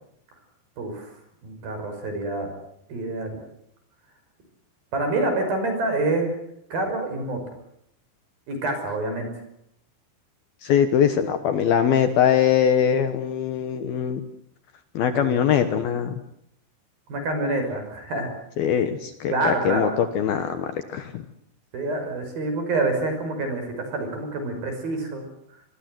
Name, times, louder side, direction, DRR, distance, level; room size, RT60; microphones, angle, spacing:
voice 1, 0.8-1.2 1.4-2.5 2.9-3.4 4.9-6.4 6.7-7.4 8.5-9.3 15.1-15.3 17.1-18.3 19.3-19.9 21.7-25.2, right 2 dB, 50° right, 6 dB, 7.3 m, -27 dB
voice 2, 10.6-14.2 14.9-16.2 18.6-21.3, left 8 dB, 70° left, 9 dB, 2.7 m, -22 dB
26.0 x 22.5 x 7.8 m, 0.73 s
omnidirectional pair, 5.4 m